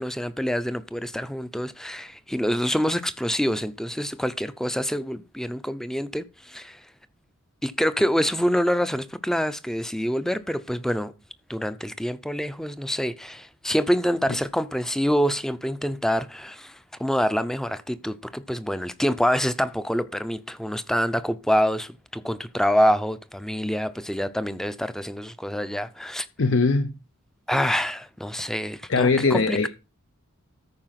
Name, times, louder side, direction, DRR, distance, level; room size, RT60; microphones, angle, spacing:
voice 1, 0.0-6.8 7.6-11.1 11.5-26.3 27.5-29.7, equal, ahead, 0.6 m, -26 dB
voice 2, 26.4-26.9 28.9-29.7, left 4 dB, 60° left, 0.7 m, -20 dB
14.0 x 5.0 x 5.8 m
head